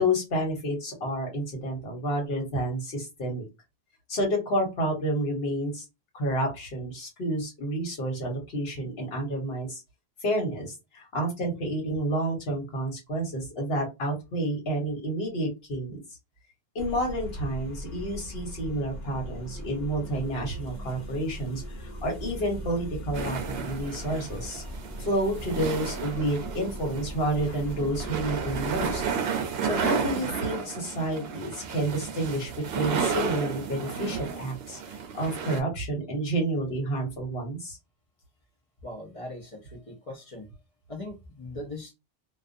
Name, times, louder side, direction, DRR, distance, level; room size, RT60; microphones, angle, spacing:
voice 1, 0.0-3.4 4.1-5.8 6.1-9.8 10.2-16.0 16.7-24.6 25.0-29.0 29.6-37.8, right 1 dB, 75° left, 1.3 m, -30 dB
sound 1, 16.8-29.1, equal, 60° left, 0.9 m, -39 dB
sound 2, 23.1-35.6, right 6 dB, 80° right, 0.8 m, -32 dB
voice 2, 38.8-40.6 40.9-41.9, left 1 dB, 40° left, 0.6 m, -40 dB
2.3 x 2.2 x 2.5 m
omnidirectional pair, 1.0 m